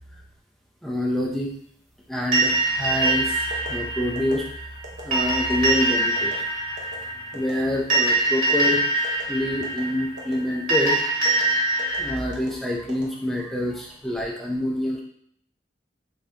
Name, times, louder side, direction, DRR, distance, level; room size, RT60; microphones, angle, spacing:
voice 1, 0.8-1.5 2.1-4.7 5.0-6.5 7.3-8.9 9.3-11.2 12.0-15.0, left 1 dB, ahead, -1 dB, 0.5 m, -27 dB
sound 1, 2.3-12.1, right 2 dB, 45° right, 1.4 m, -24 dB
sound 2, 2.9-3.1 3.5-3.7 4.2-4.4 4.8-5.0 5.5-5.7 6.2-6.3 6.8-7.0 7.3-7.6 7.9-8.1 8.5-8.7 9.0-9.3 9.6-9.8 10.2-10.3 10.7-10.9 11.2-11.4 11.8-12.0 12.3-12.5 12.9-13.5 14.0-14.3, right 1 dB, 75° right, 0.8 m, -39 dB
3.8 x 2.8 x 3.3 m, 0.66 s
head